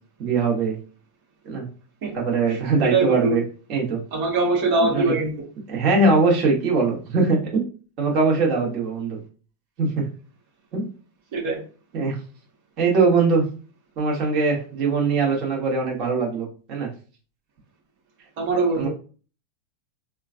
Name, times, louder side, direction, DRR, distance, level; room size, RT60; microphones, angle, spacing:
voice 1, 0.2-0.8 1.4-1.7 2.1-3.4 3.7-4.0 4.8-5.1 5.7-7.6 8.0-9.2 9.8-10.0 10.7-10.9 11.9-12.1 12.8-13.4 14.0-16.9 18.8-18.9, right 4 dB, 45° right, -1 dB, 1.1 m, -21 dB
voice 2, 2.9-3.4 4.1-5.3 11.3-11.6 18.4-18.9, right 3 dB, 65° right, -2 dB, 1.1 m, -22 dB
3.8 x 2.3 x 2.5 m, 0.37 s
supercardioid pair, 130°, 0 cm